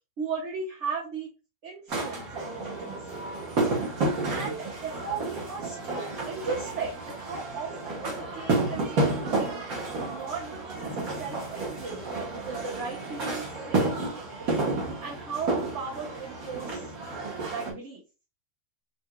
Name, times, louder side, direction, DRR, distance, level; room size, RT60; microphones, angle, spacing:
voice 1, 0.2-1.3 1.6-3.0 4.3-5.8 6.3-14.5 15.0-16.9 17.5-18.0, right 5 dB, 55° right, -4 dB, 1.3 m, -37 dB
sound 1, 1.9-17.7, right 2 dB, 70° right, 1.8 m, -31 dB
5.8 x 2.7 x 2.2 m, 0.30 s
omnidirectional pair, 1.6 m